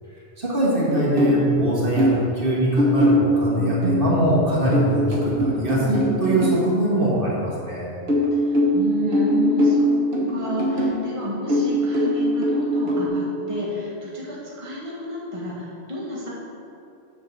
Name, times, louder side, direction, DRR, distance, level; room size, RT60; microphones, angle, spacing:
voice 1, 0.4-7.9, right 1 dB, 60° right, -6 dB, 1.8 m, -22 dB
sound 1, 0.9-2.3 2.8-6.6 8.1-11.0 11.5-13.1, equal, 75° right, 1.5 m, -21 dB
voice 2, 8.3-16.3, equal, 30° right, -6 dB, 1.6 m, -31 dB
7.6 x 5.1 x 6.5 m, 2.7 s
omnidirectional pair, 1.1 m